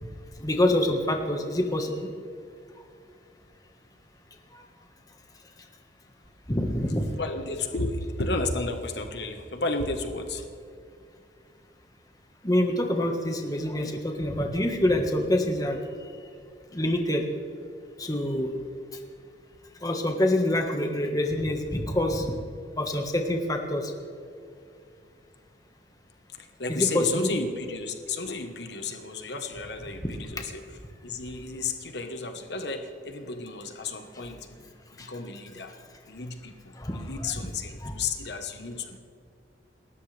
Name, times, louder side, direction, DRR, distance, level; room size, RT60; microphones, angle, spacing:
voice 1, 0.4-2.1 4.5-4.6 6.5-7.0 12.4-16.1 16.7-17.2 18.0-18.5 19.8-22.3 22.8-23.9 26.7-27.3 34.1-34.3 35.0-35.1 36.7-37.3 37.8-38.0, left 1 dB, 20° left, 3 dB, 1.5 m, -26 dB
voice 2, 7.1-10.5 26.3-30.6 31.0-34.7 35.0-35.7 36.1-39.0, left 3 dB, 70° left, 6 dB, 1.3 m, -33 dB
28.5 x 13.5 x 3.4 m, 2.3 s
head